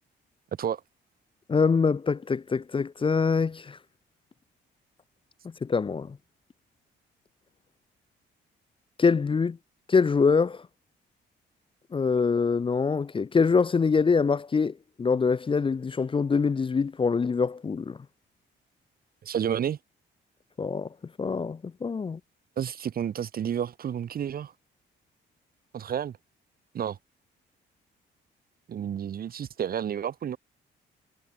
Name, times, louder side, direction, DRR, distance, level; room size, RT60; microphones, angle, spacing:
voice 1, 1.5-3.8 5.6-6.2 9.0-9.6 9.9-10.6 11.9-18.0 20.6-20.9 21.2-22.2, left 5 dB, 25° left, 0.6 m, -24 dB
voice 2, 19.2-19.8 22.6-24.5 25.7-26.2 26.7-27.0 28.7-30.4, right 9 dB, 50° right, 0.8 m, -30 dB
cardioid pair, 90°, 20 cm